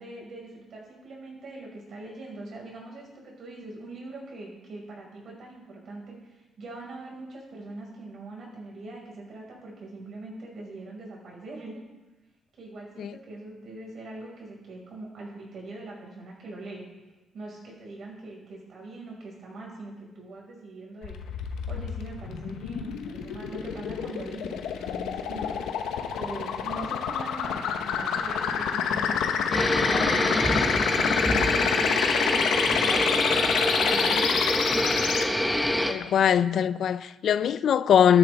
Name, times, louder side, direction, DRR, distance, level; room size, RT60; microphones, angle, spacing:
voice 1, 0.0-11.8 12.6-16.9 17.3-21.2 21.7-25.6 26.1-33.1 33.4-34.4, right 2 dB, 60° right, 5.2 m, -41 dB
sound 1, 21.0-35.2, left 7 dB, 90° left, 1.0 m, -27 dB
sound 2, 29.5-35.9, equal, 5° left, 1.0 m, -26 dB
voice 2, 35.9-38.2, left 8 dB, 65° left, 0.4 m, -21 dB
13.0 x 13.0 x 3.5 m
cardioid pair, 90°, 0 cm